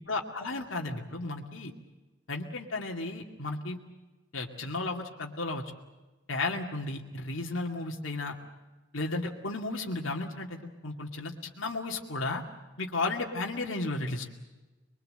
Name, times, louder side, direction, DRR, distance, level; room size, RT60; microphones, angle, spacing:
voice 1, 0.1-1.7 2.3-3.8 4.3-5.6 6.3-8.3 8.9-12.4 12.8-14.3, left 2 dB, 85° left, 0 dB, 2.3 m, -34 dB
23.5 x 23.0 x 7.8 m, 1.2 s
head